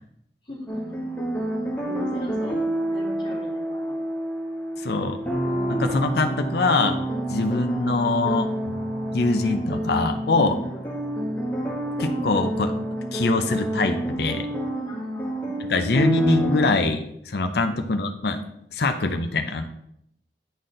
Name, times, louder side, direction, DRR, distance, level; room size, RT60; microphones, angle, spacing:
voice 1, 0.4-1.0 1.9-4.0 10.6-10.9 14.8-15.5 17.5-17.8, left 1 dB, 25° left, -6 dB, 2.3 m, -40 dB
sound 1, 0.7-16.7, right 1 dB, 10° left, 1.3 m, -28 dB
voice 2, 4.8-5.2 5.7-7.0 7.3-8.8 9.1-10.6 12.0-12.7 13.1-14.5 15.7-18.4 18.7-19.6, left 3 dB, 60° left, 6 dB, 0.6 m, -23 dB
9.2 x 4.2 x 3.8 m, 0.74 s
head